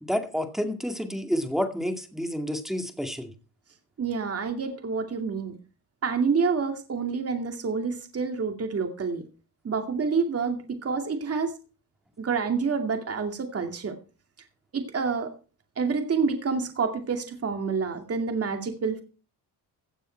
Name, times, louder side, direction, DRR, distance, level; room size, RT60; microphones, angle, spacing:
voice 1, 0.0-3.3, equal, ahead, 6 dB, 2.2 m, -29 dB
voice 2, 4.0-5.5 6.0-9.2 9.6-11.5 12.2-14.0 14.7-15.3 15.8-19.0, right 5 dB, 40° right, 5 dB, 2.3 m, -28 dB
16.5 x 9.0 x 4.5 m, 0.35 s
cardioid pair, 130°, 38 cm